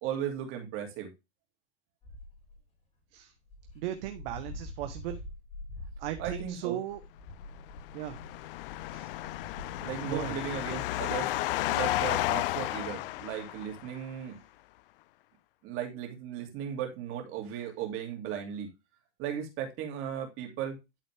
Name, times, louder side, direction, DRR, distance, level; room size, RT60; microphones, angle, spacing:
voice 1, 0.0-1.1 6.2-6.8 9.8-11.3 11.7-14.4 15.6-18.7 19.2-20.8, right 9 dB, 35° right, 2.8 m, -36 dB
Dog, 2.0-2.6 3.2-3.3 3.5-10.8, left 2 dB, 20° left, 3.4 m, -46 dB
voice 2, 3.7-5.2 6.0-7.0 7.9-8.2 8.9-9.1 10.1-10.4, right 13 dB, 55° right, 1.1 m, -36 dB
sound 1, 7.7-14.0, left 17 dB, 55° left, 0.4 m, -33 dB
12.0 x 4.1 x 3.4 m
hypercardioid pair, 135°, 35 cm